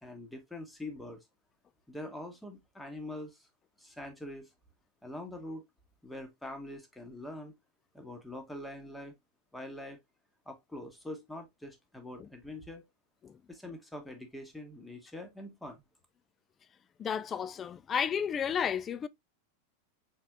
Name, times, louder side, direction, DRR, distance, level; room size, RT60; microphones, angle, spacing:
voice 1, 0.0-1.2 1.9-3.5 3.8-4.5 5.0-5.6 6.0-7.5 7.9-9.1 9.5-10.0 10.4-12.8 13.5-15.8, left 1 dB, 5° left, 1.3 m, -44 dB
voice 2, 17.0-19.1, left 7 dB, 25° left, 0.3 m, -32 dB
4.5 x 4.0 x 2.5 m
figure-of-eight pair, 90°, 0 cm